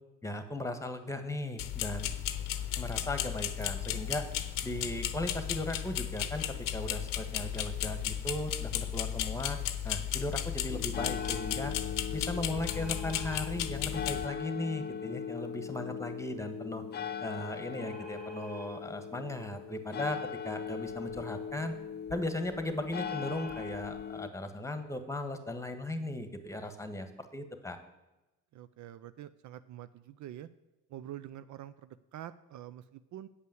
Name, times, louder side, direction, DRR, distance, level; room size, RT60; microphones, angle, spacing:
voice 1, 0.2-2.1 2.8-4.2 4.6-9.6 9.8-11.7 12.1-16.8 17.2-20.2 20.4-21.7 22.1-27.1 27.3-27.8, left 1 dB, 10° left, 8 dB, 1.4 m, -37 dB
sound 1, 1.6-14.3, left 11 dB, 75° left, 0.7 m, -35 dB
sound 2, 10.7-24.3, left 7 dB, 30° left, 0.4 m, -40 dB
sound 3, 11.2-11.5 12.6-13.5 17.8-18.7 22.9-23.6 24.5-24.6 24.8-25.0, right 3 dB, 80° right, 3.6 m, -50 dB
voice 2, 28.5-30.5 30.9-33.3, right 12 dB, 60° right, 14 dB, 0.5 m, -46 dB
8.1 x 5.5 x 7.8 m, 1.0 s
supercardioid pair, 55°, 33 cm